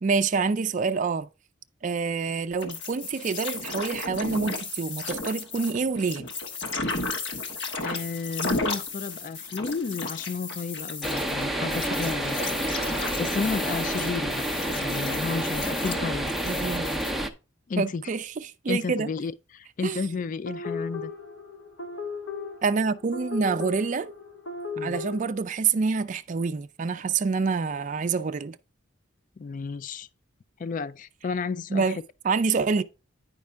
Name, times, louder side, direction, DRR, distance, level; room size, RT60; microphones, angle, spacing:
voice 1, 0.0-1.3 1.8-6.3 16.4-16.9 17.8-19.1 19.8-20.0 22.6-24.1 24.8-28.6 31.7-32.0 32.2-32.8, right 4 dB, 40° right, 0.4 m, -27 dB
sound 1, 2.6-17.1, left 3 dB, 65° left, 1.3 m, -34 dB
voice 2, 7.8-12.4 13.2-14.5 14.8-16.3 17.7-18.0 18.7-21.1 24.8-25.0 29.4-30.1 30.6-32.0, left 4 dB, 40° left, 0.3 m, -32 dB
sound 2, 11.0-17.3, right 1 dB, ahead, 0.6 m, -29 dB
sound 3, 20.5-25.3, left 4 dB, 85° left, 1.5 m, -36 dB
9.5 x 5.4 x 3.4 m
head